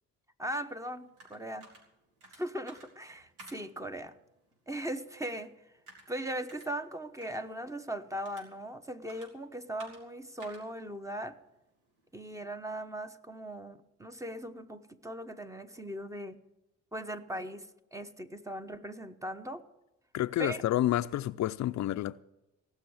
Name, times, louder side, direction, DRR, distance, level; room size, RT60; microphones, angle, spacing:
voice 1, 0.4-1.7 2.3-4.1 4.7-5.5 6.1-11.4 12.1-16.4 16.9-19.6 20.4-20.6, right 1 dB, 10° right, 1.1 m, -39 dB
sound 1, 0.6-12.2, right 2 dB, 90° right, 4.2 m, -58 dB
voice 2, 20.1-22.2, left 13 dB, 65° left, 0.5 m, -29 dB
17.5 x 6.4 x 9.6 m
cardioid pair, 90°, 30 cm